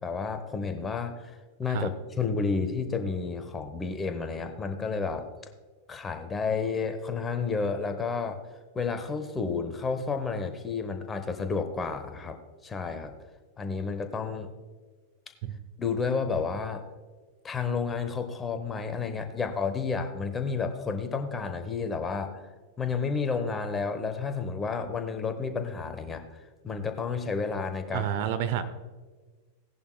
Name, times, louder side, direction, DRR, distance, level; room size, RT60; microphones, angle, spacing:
voice 1, 0.0-5.3 5.9-8.4 8.7-12.4 12.6-13.1 13.6-14.5 15.8-16.8 17.4-22.4 22.8-26.2 26.6-28.1, left 5 dB, 15° left, 8 dB, 1.0 m, -31 dB
voice 2, 27.9-28.6, right 10 dB, 50° right, 10 dB, 0.7 m, -29 dB
17.0 x 10.5 x 2.2 m, 1.4 s
figure-of-eight pair, 90°, 0 cm